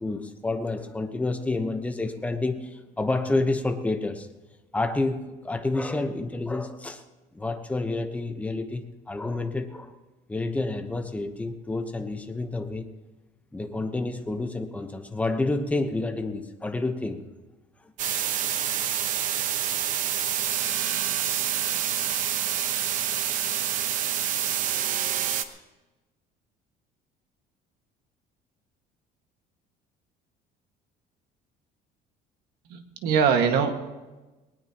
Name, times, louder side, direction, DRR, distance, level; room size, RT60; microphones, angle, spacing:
voice 1, 0.0-4.3 4.7-7.0 7.3-9.9 10.3-12.9 13.5-17.2, left 2 dB, 10° left, 6 dB, 1.0 m, -29 dB
sound 1, 18.0-25.4, right 10 dB, 50° right, 1.0 m, -27 dB
voice 2, 32.7-33.7, right 6 dB, 70° right, 5 dB, 1.9 m, -22 dB
20.5 x 19.0 x 3.0 m, 1.2 s
cardioid pair, 160°, 17 cm